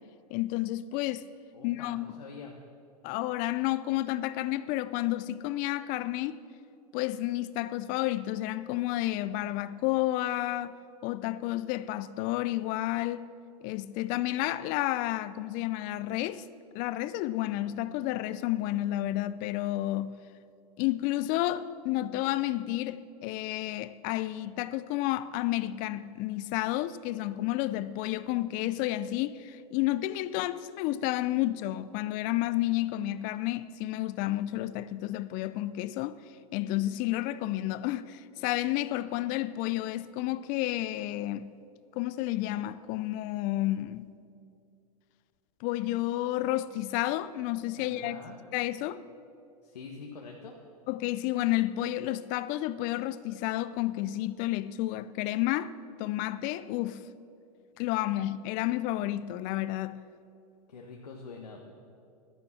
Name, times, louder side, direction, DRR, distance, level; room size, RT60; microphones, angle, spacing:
voice 1, 0.3-1.3 1.6-2.0 3.0-6.4 6.9-10.7 11.0-13.2 13.6-16.4 16.7-20.1 20.8-36.2 36.5-41.5 42.0-44.1 45.6-48.2 48.5-49.0 50.9-55.7 56.0-57.0 57.8-60.0, left 15 dB, 40° left, 0.5 m, -31 dB
voice 2, 1.5-2.5 47.8-48.4 49.6-50.6 60.7-61.7, left 4 dB, 85° left, 1.4 m, -45 dB
12.0 x 10.0 x 7.2 m
hypercardioid pair, 110°, 20 cm